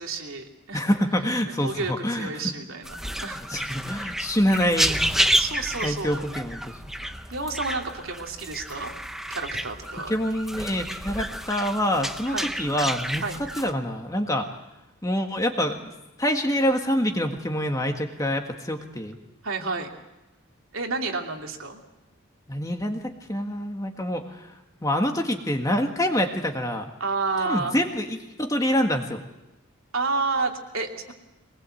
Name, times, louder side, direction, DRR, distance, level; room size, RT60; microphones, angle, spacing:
voice 1, 0.0-0.9 1.5-2.9 3.2-3.8 5.4-6.2 7.0-8.9 9.3-10.1 12.3-12.5 13.2-13.5 19.4-19.9 20.7-21.8 27.0-27.8 29.9-31.1, right 3 dB, 75° right, 2 dB, 2.8 m, -30 dB
voice 2, 0.7-2.3 3.5-5.2 5.8-6.8 10.1-13.2 13.6-14.5 15.0-15.9 16.2-19.2 22.5-26.9 27.5-29.2, equal, 15° left, 4 dB, 1.7 m, -26 dB
sound 1, 2.8-13.7, right 1 dB, ahead, 0.7 m, -30 dB
23.5 x 20.0 x 7.9 m, 0.97 s
head